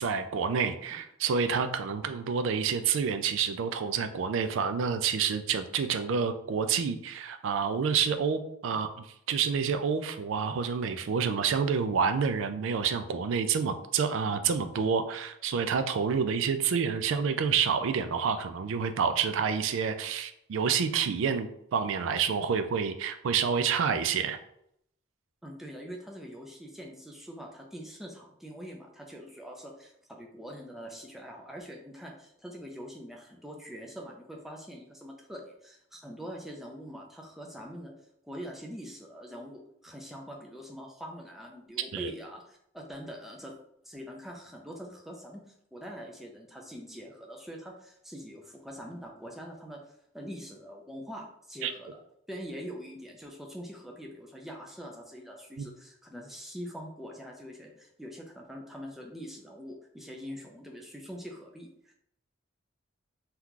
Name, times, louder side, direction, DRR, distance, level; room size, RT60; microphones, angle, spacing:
voice 1, 0.0-24.4 41.9-42.1 51.6-51.7 55.6-55.7, right 6 dB, 70° right, 9 dB, 0.3 m, -28 dB
voice 2, 25.4-37.9 38.2-43.5 43.8-45.4 45.7-49.8 50.1-52.0 52.3-61.9, equal, ahead, -1 dB, 0.4 m, -44 dB
2.9 x 2.4 x 3.6 m, 0.74 s
head